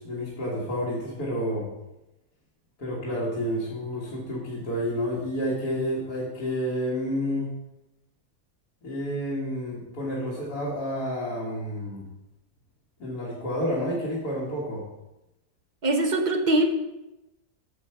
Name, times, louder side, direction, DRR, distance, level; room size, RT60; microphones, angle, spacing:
voice 1, 0.0-1.7 2.8-7.5 8.8-12.0 13.0-14.8, equal, 75° left, -7 dB, 2.4 m, -30 dB
voice 2, 15.8-16.8, right 1 dB, 35° right, 4 dB, 0.9 m, -22 dB
8.2 x 6.9 x 4.6 m, 0.96 s
omnidirectional pair, 1.7 m